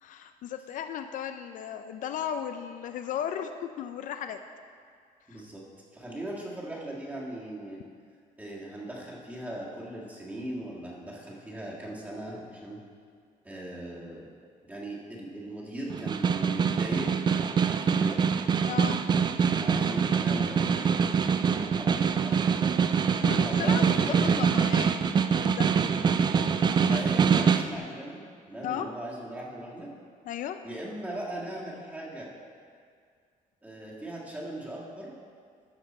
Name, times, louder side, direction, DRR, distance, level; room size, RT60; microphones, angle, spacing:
voice 1, 0.0-4.4 5.3-5.4 18.6-19.0 23.2-24.0 24.4-25.7 26.9-27.1 28.6-28.9 30.3-30.6, left 9 dB, 65° left, 8 dB, 0.4 m, -35 dB
voice 2, 5.3-5.6 5.9-7.8 8.4-12.8 13.4-14.3 14.6-18.2 19.4-20.9 21.2-22.7 23.3-24.5 26.7-29.9 30.6-32.3 33.6-35.1, right 1 dB, 10° right, -4 dB, 1.7 m, -39 dB
Snare drum, 15.9-27.7, right 6 dB, 30° right, 0.3 m, -24 dB
13.0 x 6.0 x 4.2 m, 2.1 s
cardioid pair, 145°, 15 cm